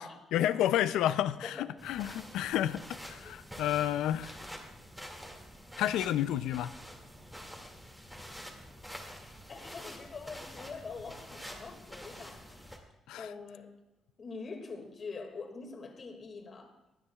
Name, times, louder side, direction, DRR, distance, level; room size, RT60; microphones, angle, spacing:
voice 1, 0.3-4.4 5.8-6.8 13.1-13.3, left 12 dB, 90° left, 0.4 m, -30 dB
sound 1, 1.8-12.8, equal, 5° right, 2.1 m, -47 dB
voice 2, 9.0-12.7 13.2-13.7 14.2-16.7, left 4 dB, 45° left, 2.0 m, -44 dB
24.0 x 9.6 x 2.3 m
cardioid pair, 90°, 0 cm